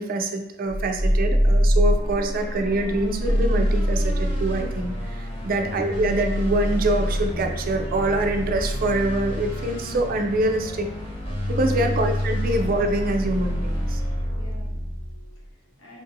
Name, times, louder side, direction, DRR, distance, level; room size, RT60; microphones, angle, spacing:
voice 1, 0.0-10.9 11.5-14.0, right 1 dB, 45° right, 5 dB, 0.4 m, -25 dB
sound 1, 0.7-15.3, equal, 30° left, 1.0 m, -25 dB
voice 2, 14.3-16.0, left 2 dB, 85° left, -2 dB, 1.0 m, -49 dB
4.8 x 2.6 x 2.6 m, 0.89 s
head